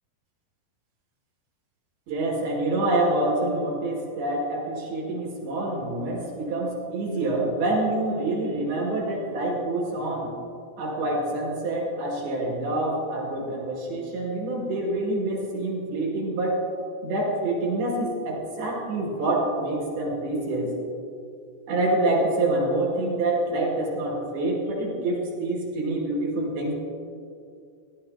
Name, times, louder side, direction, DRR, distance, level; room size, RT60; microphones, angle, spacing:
voice 1, 2.1-10.3 10.8-16.6 17.0-20.7 21.7-26.7, right 2 dB, 65° right, -3 dB, 3.6 m, -26 dB
16.0 x 11.0 x 2.8 m, 2.4 s
omnidirectional pair, 5.1 m